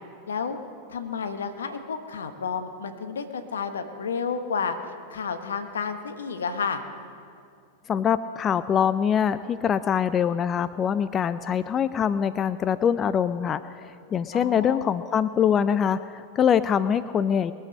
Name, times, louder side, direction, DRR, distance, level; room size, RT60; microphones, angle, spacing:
voice 1, 0.3-0.6 0.9-4.8 5.1-6.8 14.3-15.0, left 5 dB, 75° left, 8 dB, 1.2 m, -31 dB
voice 2, 7.9-17.5, left 8 dB, 30° left, 14 dB, 0.4 m, -24 dB
22.0 x 7.5 x 6.4 m, 2.4 s
figure-of-eight pair, 95°, 0 cm